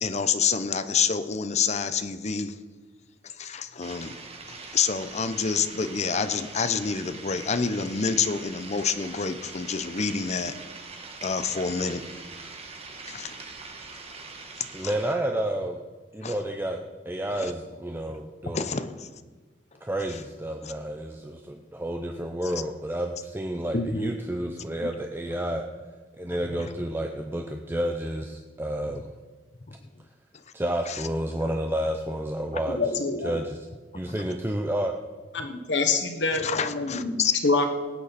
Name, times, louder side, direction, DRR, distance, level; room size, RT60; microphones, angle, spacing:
voice 1, 0.0-2.5 3.4-4.1 4.7-10.5 11.2-12.0 13.1-13.3 16.2-16.3 17.4-17.5 18.5-18.9 20.6-20.7 23.7-24.1 34.1-34.2 36.4-37.3, left 5 dB, 40° left, 11 dB, 0.7 m, -27 dB
sound 1, 3.8-15.2, right 4 dB, 35° right, 1.5 m, -42 dB
voice 2, 14.7-15.8 16.1-16.8 17.1-18.8 19.8-25.6 26.2-29.1 30.5-32.8 33.2-33.6 33.9-35.0, right 1 dB, 15° right, 3 dB, 0.7 m, -30 dB
voice 3, 32.4-33.3 35.3-37.7, left 3 dB, 75° left, 5 dB, 1.4 m, -26 dB
18.0 x 9.3 x 4.2 m, 1.3 s
head